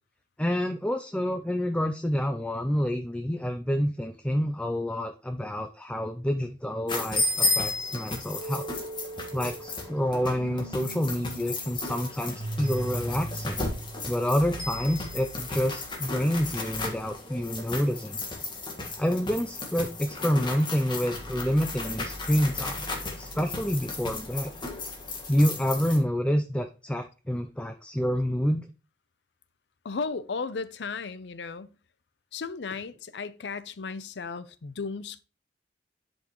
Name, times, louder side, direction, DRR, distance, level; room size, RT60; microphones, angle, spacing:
voice 1, 0.4-8.7 9.3-13.6 14.1-18.2 19.0-22.8 23.2-24.5 25.3-28.7, equal, 5° left, 0.5 m, -28 dB
sound 1, 6.9-26.0, left 2 dB, 25° left, 1.6 m, -34 dB
sound 2, 8.4-16.2, right 2 dB, 70° right, 0.7 m, -40 dB
voice 2, 29.8-31.8 32.3-35.2, left 4 dB, 75° left, 0.6 m, -35 dB
10.5 x 5.3 x 3.0 m
head